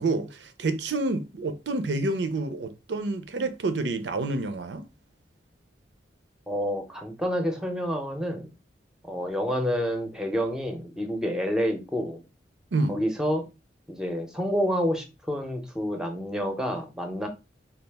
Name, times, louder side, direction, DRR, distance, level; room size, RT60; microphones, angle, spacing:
voice 1, 0.0-4.9 12.7-13.0, right 3 dB, 85° right, 0.5 m, -28 dB
voice 2, 6.5-8.5 9.0-12.2 12.9-13.5 13.9-17.3, equal, 5° right, 0.6 m, -28 dB
4.0 x 2.4 x 3.4 m
head